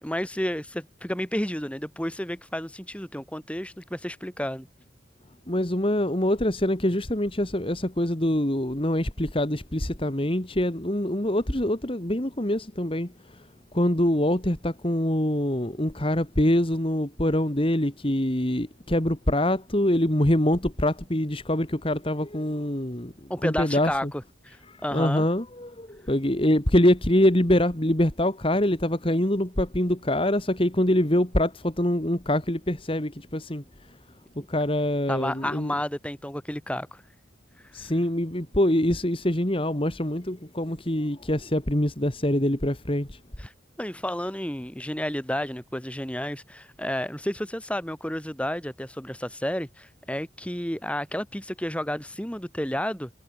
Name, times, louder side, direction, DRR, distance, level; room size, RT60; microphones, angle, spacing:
voice 1, 0.0-4.7 23.3-25.2 35.1-37.0 43.4-43.5 43.8-53.1, equal, 5° left, 3.2 m, -31 dB
voice 2, 5.5-13.5 13.7-24.1 24.7-34.0 34.4-35.7 37.7-43.2, left 1 dB, 30° left, 2.1 m, -24 dB
head